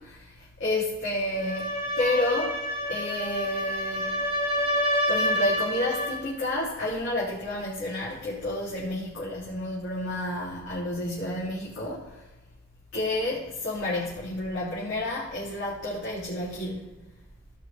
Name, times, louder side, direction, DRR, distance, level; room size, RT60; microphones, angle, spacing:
voice 1, 0.2-2.6 2.9-4.2 5.1-12.2 12.9-17.0, left 1 dB, 80° left, -9 dB, 3.5 m, -30 dB
sound 1, 1.3-6.2, equal, 40° left, 3.3 m, -28 dB
17.0 x 5.8 x 4.3 m, 1.0 s
head